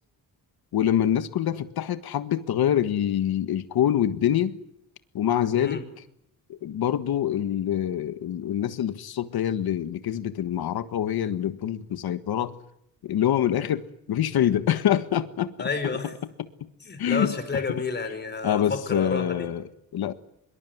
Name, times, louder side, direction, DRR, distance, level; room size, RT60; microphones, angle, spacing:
voice 1, 0.7-4.6 5.1-5.9 6.5-12.6 13.0-15.5 17.0-17.3 18.4-20.1, left 10 dB, 75° left, 1.6 m, -25 dB
voice 2, 15.6-16.1 16.8-19.5, left 4 dB, 25° left, 4.8 m, -30 dB
25.0 x 22.5 x 9.5 m
wide cardioid pair, 165°, 37 cm